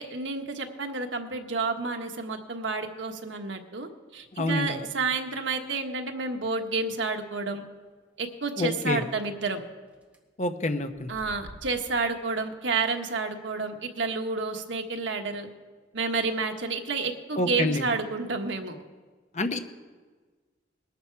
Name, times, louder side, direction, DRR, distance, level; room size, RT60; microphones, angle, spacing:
voice 1, 0.0-7.6 8.2-9.6 11.1-15.5 15.9-18.8, right 4 dB, 85° right, 4 dB, 1.4 m, -30 dB
voice 2, 4.3-4.9 8.6-9.0 10.4-11.1 17.4-17.9 19.3-19.6, left 2 dB, 40° left, 7 dB, 0.9 m, -27 dB
sound 1, 5.8-5.9 6.5-6.6 6.9-7.0 7.3-7.4 9.4-9.5 9.8-10.2 10.8-12.2, equal, 10° right, 1.6 m, -49 dB
20.5 x 11.5 x 4.7 m, 1.4 s
head